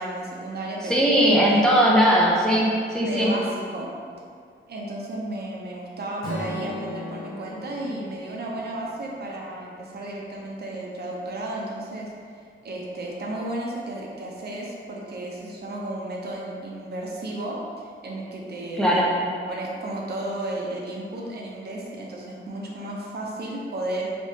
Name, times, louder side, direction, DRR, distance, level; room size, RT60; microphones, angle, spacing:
voice 1, 0.0-1.2 1.4-1.6 3.0-3.9 4.7-12.1 12.6-19.0 19.5-24.1, right 1 dB, 50° right, -2 dB, 0.6 m, -33 dB
voice 2, 0.8-3.3 18.8-19.1, equal, 5° left, -5 dB, 0.4 m, -19 dB
Strum, 6.2-10.4, left 1 dB, 75° left, 1.0 m, -38 dB
3.4 x 2.9 x 2.7 m, 2.2 s
wide cardioid pair, 125°, 21 cm